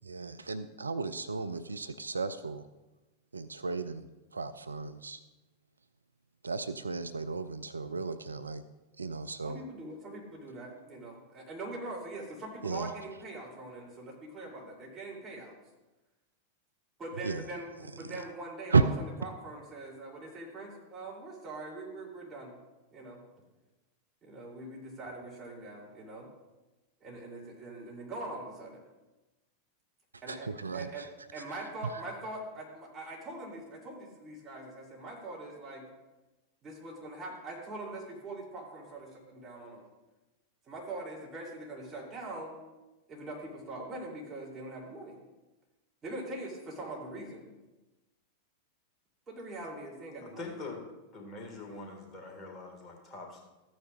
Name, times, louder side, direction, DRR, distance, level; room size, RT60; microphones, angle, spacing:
voice 1, 0.0-2.6 3.3-4.1 4.3-5.2 6.4-8.6 9.0-9.6 12.6-12.9 17.2-17.4 18.7-18.8 30.3-31.1 31.4-31.5, right 4 dB, 75° right, 11 dB, 0.3 m, -33 dB
voice 2, 9.4-15.5 17.0-22.6 22.9-23.2 24.2-26.3 27.0-28.8 30.2-30.5 30.7-35.8 36.6-39.8 40.7-42.6 43.1-45.2 46.0-47.5 49.3-50.7, right 2 dB, 20° right, -3 dB, 3.2 m, -42 dB
voice 3, 50.2-50.8 51.1-53.4, left 3 dB, 25° left, 0 dB, 2.0 m, -44 dB
14.5 x 9.3 x 2.5 m, 1.1 s
figure-of-eight pair, 90°, 0 cm